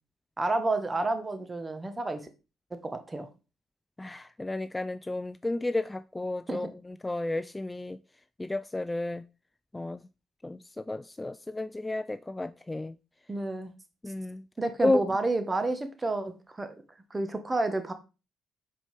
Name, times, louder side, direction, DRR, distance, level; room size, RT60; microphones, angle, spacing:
voice 1, 0.4-2.2 2.7-3.3 6.5-6.7 13.3-13.7 14.6-16.7 17.1-17.9, right 2 dB, 25° right, 1.2 m, -30 dB
voice 2, 4.0-8.0 8.4-9.2 9.7-10.1 10.4-12.9 14.0-14.4 14.8-15.0, left 2 dB, 20° left, 0.3 m, -32 dB
5.6 x 5.0 x 3.3 m
hypercardioid pair, 45°, 0 cm